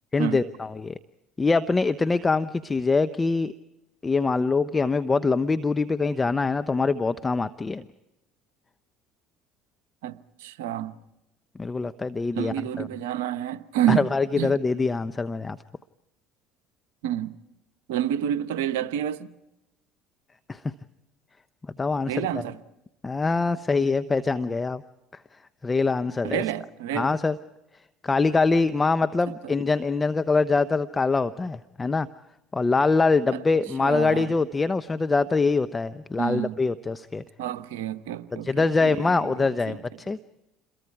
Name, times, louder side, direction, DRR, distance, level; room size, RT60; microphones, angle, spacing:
voice 1, 0.1-1.0 1.4-3.5 4.0-7.8 11.6-12.9 13.9-15.6 20.5-20.6 21.8-22.3 23.0-24.8 25.6-26.4 26.9-27.4 28.0-32.1 32.5-37.2 38.3-40.2, left 4 dB, 25° left, 0.8 m, -24 dB
voice 2, 10.0-11.0 12.4-14.1 14.4-14.6 17.0-17.4 17.9-19.3 22.1-22.6 26.2-27.1 33.3-33.4 33.8-34.3 36.2-36.6 37.4-39.0 39.7-39.8, right 11 dB, 80° right, 1.0 m, -28 dB
29.0 x 22.0 x 4.8 m
hypercardioid pair, 75°, 0 cm